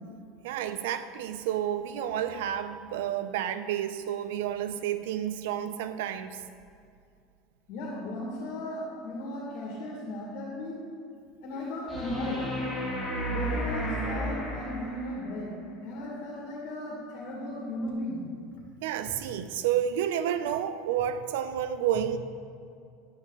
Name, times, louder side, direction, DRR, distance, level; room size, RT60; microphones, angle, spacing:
voice 1, 0.4-6.4 18.8-22.2, right 10 dB, 85° right, 11 dB, 0.5 m, -30 dB
voice 2, 7.7-10.8 11.4-12.5 13.3-15.5 15.8-18.2, left 1 dB, 65° left, -3 dB, 2.3 m, -36 dB
sound 1, 11.9-15.2 17.9-18.0, right 1 dB, 10° left, 2.8 m, -32 dB
10.5 x 9.1 x 3.9 m, 2.4 s
supercardioid pair, 135°, 0 cm